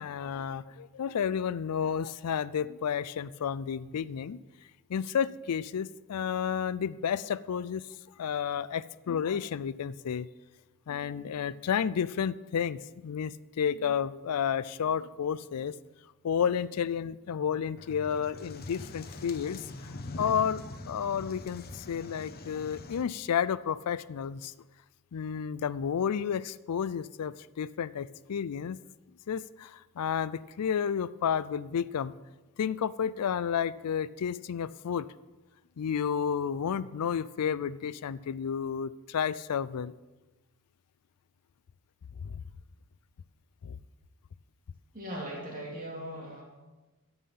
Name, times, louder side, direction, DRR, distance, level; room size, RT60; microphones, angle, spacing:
voice 1, 0.0-4.4 4.9-7.9 8.2-10.3 10.9-15.8 16.2-24.5 25.1-28.8 29.3-32.1 32.6-35.1 35.8-39.9 42.2-42.4 43.6-43.8, left 7 dB, 90° left, 18 dB, 0.4 m, -31 dB
sound 1, 17.8-23.0, left 2 dB, 45° left, 0.9 m, -43 dB
voice 2, 44.9-46.4, equal, 40° right, -2 dB, 2.9 m, -39 dB
14.0 x 5.6 x 8.7 m, 1.1 s
head